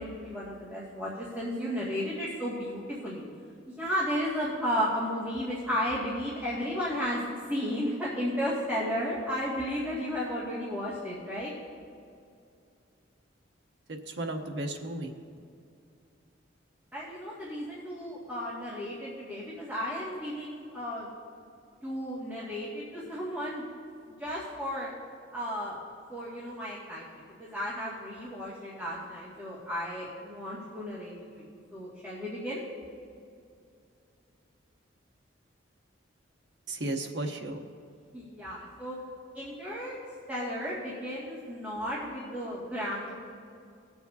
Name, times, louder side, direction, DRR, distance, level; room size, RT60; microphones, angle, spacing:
voice 1, 0.0-3.3 3.7-11.5 16.9-21.1 21.8-23.6 24.1-24.9 25.3-25.8 26.1-31.4 31.7-32.6 38.1-39.0 39.3-40.0 40.3-43.1, equal, 10° right, -10 dB, 2.0 m, -34 dB
voice 2, 13.9-15.1 36.7-37.7, right 1 dB, 65° right, 3 dB, 0.9 m, -34 dB
21.0 x 7.1 x 2.8 m, 2.5 s
head